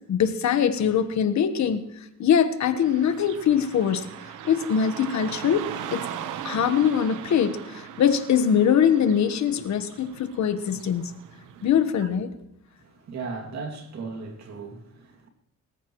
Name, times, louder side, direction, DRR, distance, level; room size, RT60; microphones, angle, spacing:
voice 1, 0.1-1.8 2.2-4.1 4.4-5.6 5.9-6.0 6.4-11.1 11.6-12.3, left 8 dB, 65° left, 1.3 m, -22 dB
Car passing by / Traffic noise roadway noise, 2.8-11.8, right 9 dB, 85° right, 1.1 m, -39 dB
voice 2, 12.8-15.3, right 4 dB, 60° right, 2.5 m, -37 dB
23.0 x 14.0 x 3.1 m
cardioid pair, 90°, 30 cm